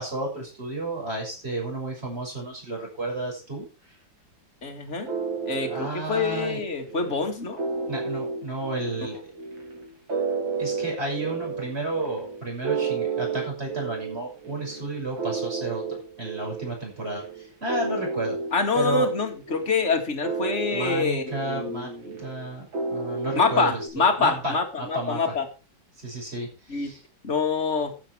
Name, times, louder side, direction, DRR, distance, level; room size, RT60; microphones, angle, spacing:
voice 1, 0.0-3.7 5.6-6.6 7.9-9.3 10.6-15.8 16.2-18.3 18.7-19.1 20.7-21.9 22.2-22.7 22.9-25.3 26.0-27.0, right 2 dB, 30° right, 0 dB, 6.6 m, -32 dB
voice 2, 4.6-5.1 5.5-7.6 18.5-22.3 23.4-25.4 26.7-26.9 27.2-27.9, left 4 dB, 40° left, 3 dB, 2.5 m, -26 dB
sound 1, 5.1-23.9, right 5 dB, 80° right, 4.3 m, -32 dB
13.5 x 9.0 x 4.7 m, 0.33 s
omnidirectional pair, 2.1 m